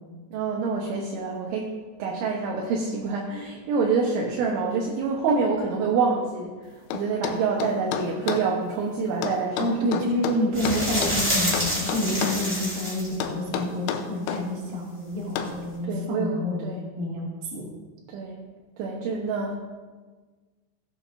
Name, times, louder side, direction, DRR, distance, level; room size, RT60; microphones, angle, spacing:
voice 1, 0.3-1.7 2.0-9.7 12.0-12.2 15.9-16.8 18.1-18.4 18.8-19.5, right 4 dB, 75° right, -1 dB, 3.1 m, -27 dB
sound 1, 6.9-8.5 9.2-11.2 11.5-12.5 13.2-14.5 15.4-15.6, left 7 dB, 85° left, 3.2 m, -30 dB
voice 2, 9.6-16.7 17.0-17.6, left 1 dB, 50° right, -5 dB, 3.6 m, -28 dB
sound 2, 10.5-13.2 15.5-15.6, equal, 15° right, 3.2 m, -27 dB
17.0 x 8.7 x 2.6 m, 1.4 s
omnidirectional pair, 5.8 m